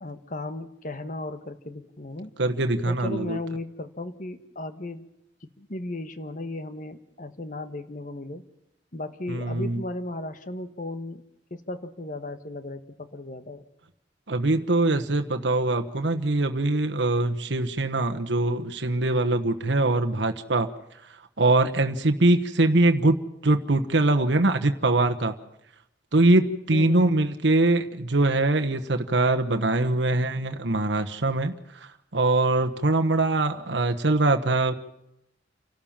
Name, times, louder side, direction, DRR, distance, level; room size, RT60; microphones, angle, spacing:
voice 1, 0.0-2.3 2.8-5.1 5.6-8.4 8.9-11.2 11.5-13.6 26.7-27.3, left 2 dB, 45° left, 10 dB, 1.5 m, -35 dB
voice 2, 2.4-3.4 9.3-9.8 14.3-20.7 21.4-23.2 23.4-25.3 26.1-34.7, right 2 dB, 70° right, 6 dB, 1.2 m, -23 dB
28.5 x 12.5 x 7.3 m, 0.81 s
head